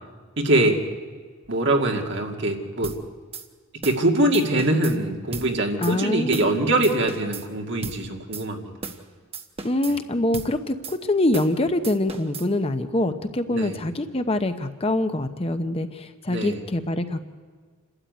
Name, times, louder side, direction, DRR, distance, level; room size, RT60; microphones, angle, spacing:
voice 1, 0.4-0.8 1.5-2.9 3.8-8.7 13.5-13.7 16.3-16.6, right 1 dB, 55° right, 3 dB, 2.3 m, -23 dB
sound 1, 2.8-3.0 3.3-3.5 3.8-4.0 4.3-5.0 5.3-5.5 5.8-5.9 6.3-6.5 6.8-7.5 7.8-8.0 8.3-8.5 8.8-9.0 9.3-10.0 10.3-10.5 10.8-11.0 11.3-11.5 11.8-12.5, right 4 dB, 30° right, 1.2 m, -35 dB
voice 2, 5.8-6.7 9.6-17.2, left 1 dB, 25° left, 8 dB, 0.9 m, -25 dB
27.5 x 13.0 x 9.4 m, 1.5 s
head